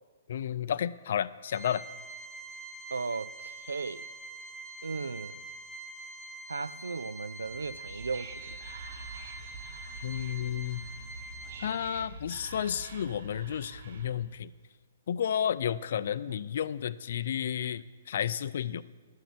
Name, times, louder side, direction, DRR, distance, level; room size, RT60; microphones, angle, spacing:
voice 1, 0.3-1.8 10.0-10.8 11.6-14.5 15.1-18.8, left 9 dB, 60° left, 0.3 m, -32 dB
Organ, 1.5-12.1, right 2 dB, 15° right, 2.0 m, -45 dB
voice 2, 2.9-4.1 4.8-5.4 6.5-8.6 16.3-16.4, right 4 dB, 85° right, 0.3 m, -36 dB
Whispering, 7.4-14.4, right 3 dB, 65° right, 1.0 m, -46 dB
11.5 x 6.1 x 8.4 m
hypercardioid pair, 130°, 0 cm